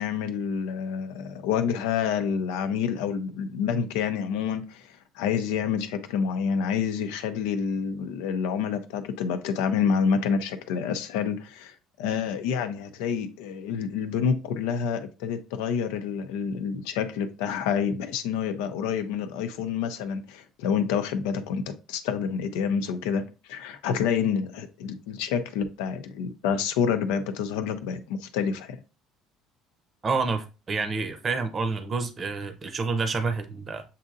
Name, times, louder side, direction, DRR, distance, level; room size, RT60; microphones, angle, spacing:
voice 1, 0.0-23.2 23.5-28.8, left 7 dB, 85° left, 0.6 m, -28 dB
voice 2, 30.0-33.8, right 4 dB, 35° right, 0.7 m, -28 dB
7.3 x 2.7 x 2.5 m
supercardioid pair, 85°, 0 cm